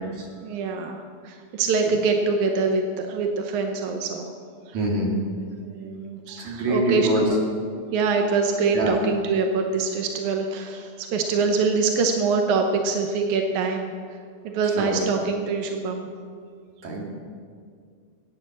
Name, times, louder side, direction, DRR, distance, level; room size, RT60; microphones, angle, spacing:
voice 1, 0.4-4.3 4.7-4.8 5.6-7.4 7.9-13.9 14.4-16.1, right 4 dB, 70° right, 3 dB, 1.8 m, -24 dB
voice 2, 4.7-5.1 6.4-7.2 8.7-9.0 14.8-15.0 16.8-17.1, right 1 dB, 50° right, -2 dB, 3.5 m, -24 dB
17.0 x 9.5 x 7.3 m, 2.1 s
omnidirectional pair, 4.6 m